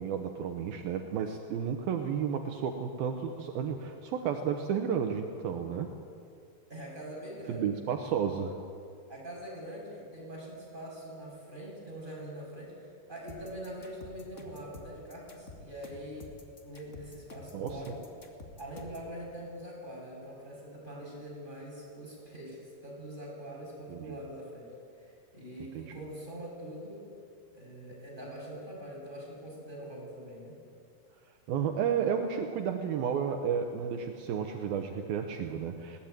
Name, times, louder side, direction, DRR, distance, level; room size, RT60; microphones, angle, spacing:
voice 1, 0.0-5.9 7.5-8.6 17.5-17.8 23.9-24.2 25.8-26.0 31.5-36.0, right 7 dB, 75° right, 5 dB, 2.7 m, -32 dB
voice 2, 6.7-7.7 9.1-16.3 16.6-18.0 18.6-27.0 27.5-30.5, right 1 dB, 10° right, -4 dB, 6.7 m, -43 dB
sound 1, 13.3-19.1, left 2 dB, 30° left, 1.3 m, -49 dB
21.0 x 19.0 x 9.1 m, 2.4 s
omnidirectional pair, 4.7 m